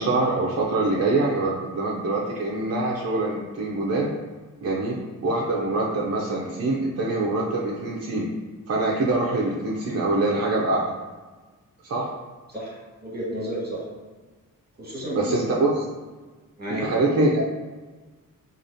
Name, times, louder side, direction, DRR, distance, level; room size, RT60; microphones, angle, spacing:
voice 1, 0.0-4.1 4.6-8.3 8.7-10.9 11.8-12.1 15.2-15.8 16.7-17.4, right 2 dB, 50° right, -4 dB, 0.5 m, -24 dB
voice 2, 13.0-13.8 14.8-15.6 16.6-16.8, equal, 30° right, -5 dB, 1.4 m, -31 dB
4.7 x 2.4 x 2.6 m, 1.3 s
wide cardioid pair, 105°, 33 cm